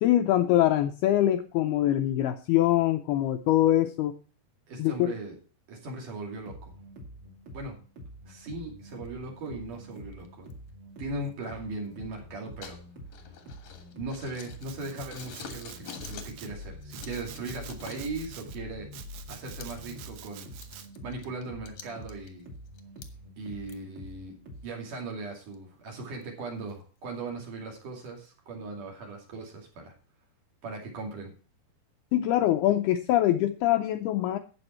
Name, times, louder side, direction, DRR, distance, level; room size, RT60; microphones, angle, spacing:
voice 1, 0.0-4.1 4.8-5.1 32.1-34.4, left 13 dB, 80° left, 7 dB, 2.3 m, -24 dB
voice 2, 4.7-5.4 5.7-6.7 7.5-7.8 8.3-10.5 11.0-12.8 13.9-18.9 19.3-20.5 21.0-22.4 23.4-24.3 24.6-29.9 30.6-31.3, right 3 dB, 50° right, 1 dB, 3.7 m, -38 dB
sound 1, 6.3-24.7, left 1 dB, 35° right, 2.7 m, -46 dB
sound 2, 8.9-9.1 10.0-10.5 11.3-11.4 12.6-14.8 15.1-16.4 16.6-18.4 19.0-20.2 20.5-23.1 23.7-23.8 24.3-24.4 25.5-25.6 26.2-26.3 26.7-26.8 27.3-27.4 27.8-28.3, left 7 dB, 60° left, 2.0 m, -47 dB
Domestic sounds home sounds, 14.6-16.5 16.9-18.6 18.9-20.9, right 11 dB, 75° right, 2.7 m, -48 dB
12.5 x 8.6 x 4.3 m, 0.36 s
omnidirectional pair, 5.1 m